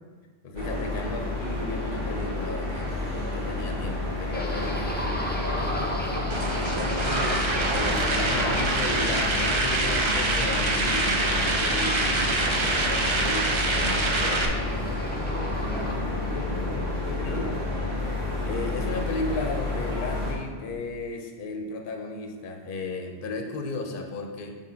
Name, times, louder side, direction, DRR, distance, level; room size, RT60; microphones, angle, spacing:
voice 1, 0.4-3.0 3.3-4.9 7.7-14.6 17.2-17.5 18.4-24.5, left 3 dB, 60° left, 3 dB, 0.8 m, -34 dB
sound 1, 0.6-20.3, left 2 dB, 90° right, 1.6 m, -30 dB
sound 2, 4.3-15.9, left 1 dB, 15° left, 0.5 m, -34 dB
voice 2, 5.4-7.4 15.0-17.9, left 1 dB, 15° right, -5 dB, 1.4 m, -37 dB
sound 3, 6.3-14.4, right 2 dB, 40° right, 0.5 m, -26 dB
6.4 x 3.2 x 5.5 m, 1.5 s
omnidirectional pair, 1.1 m